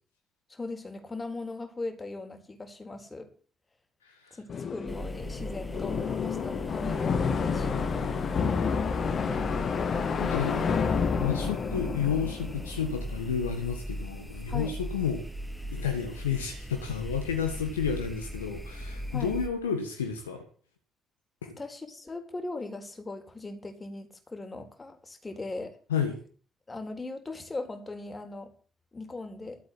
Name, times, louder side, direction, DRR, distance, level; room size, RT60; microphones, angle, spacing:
voice 1, 0.5-3.3 4.3-7.8 14.5-14.8 19.1-19.3 21.6-25.8 26.7-28.5 28.9-29.6, left 2 dB, 25° left, 6 dB, 3.9 m, -39 dB
voice 2, 4.0-4.4 10.1-10.7 11.2-15.2 15.7-20.4 21.4-21.6 25.9-26.2, left 7 dB, 85° left, 6 dB, 1.6 m, -31 dB
sound 1, 4.5-13.3, left 6 dB, 50° left, 1.9 m, -30 dB
sound 2, 4.9-19.5, equal, ahead, 2.8 m, -38 dB
14.0 x 7.9 x 7.8 m, 0.41 s
figure-of-eight pair, 40°, 0 cm